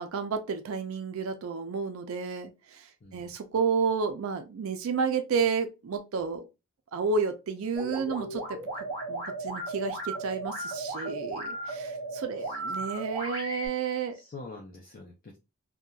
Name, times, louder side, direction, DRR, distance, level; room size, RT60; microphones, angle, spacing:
voice 1, 0.0-6.5 6.9-14.1, right 5 dB, 65° right, 0.4 m, -31 dB
voice 2, 3.0-3.3 12.4-12.5 14.1-15.4, left 3 dB, 40° left, 0.5 m, -45 dB
sound 1, 7.8-13.7, right 2 dB, 20° left, 1.0 m, -35 dB
2.9 x 2.2 x 2.3 m
head